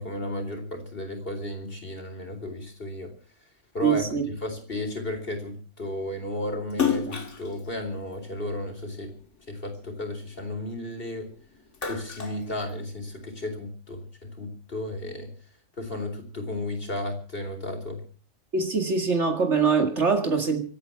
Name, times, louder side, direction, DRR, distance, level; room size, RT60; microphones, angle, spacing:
voice 1, 0.0-3.1 3.7-4.0 4.4-9.1 9.5-11.3 11.9-15.3 15.8-18.0, left 1 dB, 50° left, 4.3 m, -33 dB
voice 2, 3.8-4.2 18.5-20.6, right 5 dB, 70° right, 2.5 m, -23 dB
Splash splatter, 6.7-9.3 9.7-11.2 11.5-13.2, left 7 dB, 75° left, 2.4 m, -31 dB
25.5 x 9.3 x 5.9 m
omnidirectional pair, 1.3 m